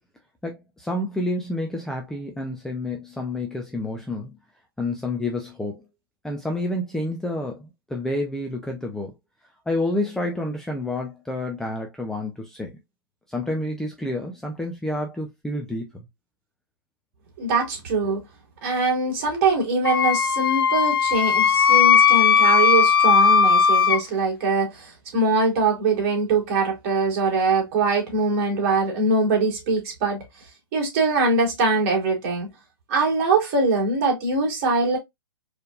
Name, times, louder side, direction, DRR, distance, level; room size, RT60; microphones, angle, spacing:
voice 1, 0.4-4.4 4.8-5.8 6.2-9.1 9.7-12.8 13.3-15.9, left 1 dB, 5° left, 0.6 m, -29 dB
voice 2, 17.4-18.2 18.6-30.2 30.7-32.5 32.9-35.0, right 3 dB, 40° right, 2.5 m, -22 dB
Wind instrument woodwind instrument, 19.8-24.0, left 6 dB, 85° left, 0.4 m, -17 dB
4.3 x 3.4 x 2.5 m
hypercardioid pair, 130°, 12 cm